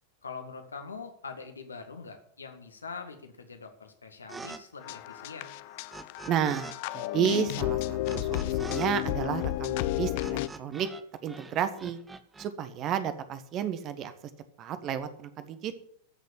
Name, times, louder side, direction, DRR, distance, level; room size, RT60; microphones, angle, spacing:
voice 1, 0.2-5.6, left 5 dB, 75° left, 6 dB, 2.0 m, -43 dB
sound 1, 4.3-4.6 4.8-6.7 7.0-11.0 11.3-12.5, right 4 dB, 10° right, 0.9 m, -45 dB
sound 2, 4.8-10.5, left 16 dB, 50° left, 0.5 m, -32 dB
voice 2, 6.3-10.9 11.2-12.0 12.4-14.1 14.6-15.7, right 9 dB, 35° right, 11 dB, 1.4 m, -31 dB
14.0 x 6.7 x 8.3 m, 0.65 s
figure-of-eight pair, 90°, 0 cm